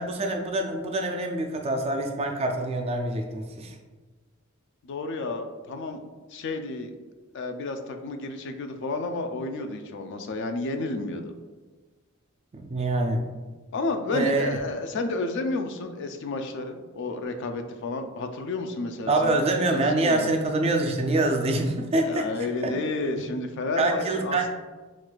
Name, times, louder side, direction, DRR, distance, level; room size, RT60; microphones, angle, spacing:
voice 1, 0.0-3.8 12.5-13.2 14.1-14.5 19.1-22.3 22.6-22.7 23.8-24.5, right 2 dB, 25° right, 3 dB, 0.4 m, -25 dB
voice 2, 4.8-6.0 6.3-6.9 7.3-11.3 13.7-19.4 19.7-20.3 22.0-24.5, left 2 dB, 55° left, 6 dB, 0.4 m, -31 dB
6.0 x 2.4 x 2.2 m, 1.3 s
head